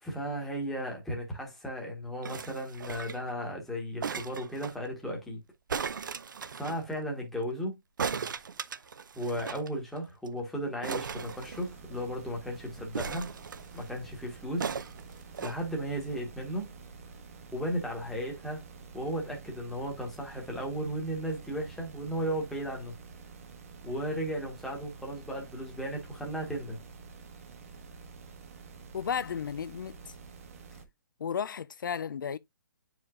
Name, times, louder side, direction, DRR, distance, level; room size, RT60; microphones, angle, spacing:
voice 1, 0.0-5.4 6.5-7.8 9.1-13.3 13.7-14.7 15.4-16.7 17.5-18.6 18.9-22.9 23.8-26.8, equal, ahead, 1.2 m, -35 dB
sound 1, 2.2-3.3 4.0-4.8 5.7-6.8 8.0-9.7 10.0-10.1 10.3-10.4 10.8-12.0 12.9-13.9 14.6-15.6 16.3-16.4, right 6 dB, 70° right, 0.6 m, -37 dB
sound 2, 11.0-30.8, right 4 dB, 45° right, 1.1 m, -49 dB
voice 2, 28.9-30.1 31.2-32.4, left 7 dB, 75° left, 0.4 m, -34 dB
8.6 x 4.8 x 2.4 m
hypercardioid pair, 170°, 11 cm